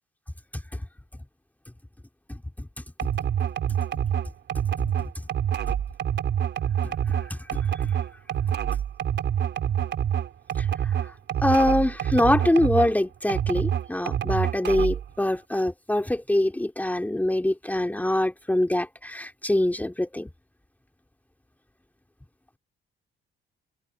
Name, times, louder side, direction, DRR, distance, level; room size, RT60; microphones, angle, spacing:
sound 1, 3.0-13.0 13.3-15.1, right 9 dB, 65° right, 4.2 m, -26 dB
voice 1, 6.8-7.7 10.6-10.9 11.4-20.3, left 1 dB, 10° left, 3.2 m, -24 dB
cardioid pair, 90°, 20 cm